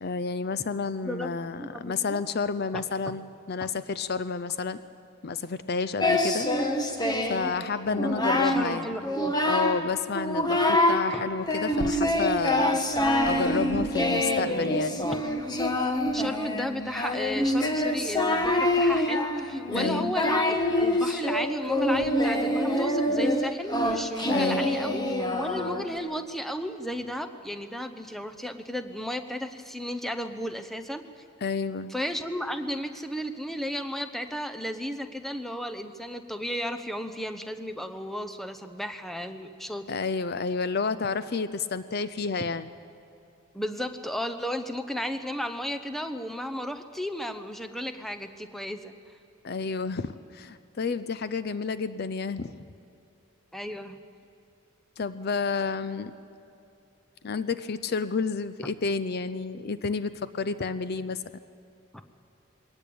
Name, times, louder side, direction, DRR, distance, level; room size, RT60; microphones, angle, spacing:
voice 1, 0.0-4.8 5.2-6.5 7.3-9.0 9.5-12.8 13.2-15.0 19.7-20.1 24.3-24.8 31.4-31.9 39.9-42.7 49.4-52.6 55.0-56.1 57.2-61.2, left 4 dB, 50° left, 14 dB, 0.6 m, -30 dB
voice 2, 1.6-2.2 2.7-2.8 8.4-9.3 11.1-11.2 16.1-25.0 25.3-31.0 31.9-39.9 43.5-48.9 53.5-54.0, equal, ahead, 7 dB, 0.9 m, -34 dB
Singing, 6.0-7.5 7.9-8.7 9.0-9.8 10.2-11.0 11.5-26.0, left 1 dB, 20° left, 1.4 m, -25 dB
22.0 x 18.5 x 8.7 m, 2.8 s
head